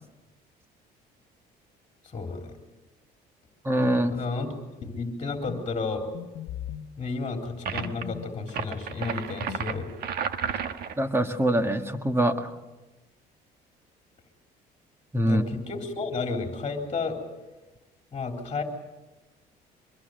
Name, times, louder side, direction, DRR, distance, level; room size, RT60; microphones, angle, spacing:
voice 1, 2.0-2.6 4.1-6.1 7.0-9.9 15.2-17.2 18.1-18.6, left 4 dB, 30° left, 3 dB, 3.7 m, -32 dB
voice 2, 3.7-4.1 11.0-12.5 15.1-15.4, right 1 dB, 15° right, 7 dB, 1.9 m, -24 dB
sound 1, 4.8-5.1 5.5-5.6 6.1-6.9 7.8-8.6 9.0-10.0, left 10 dB, 85° left, 1.1 m, -39 dB
sound 2, 7.6-8.0 8.5-11.0, right 7 dB, 65° right, 1.5 m, -32 dB
24.5 x 21.5 x 8.0 m, 1.1 s
cardioid pair, 110°, 17 cm